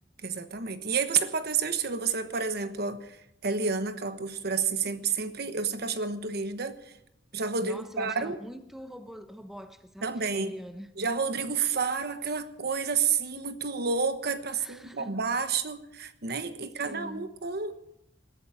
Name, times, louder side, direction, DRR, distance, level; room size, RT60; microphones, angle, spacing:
voice 1, 0.2-3.2 3.4-6.8 7.3-8.4 10.0-10.5 11.0-17.8, right 5 dB, 60° right, 1.1 m, -30 dB
voice 2, 7.6-10.9 14.6-15.1 16.8-17.3, equal, ahead, 1.0 m, -43 dB
21.0 x 13.0 x 4.9 m
head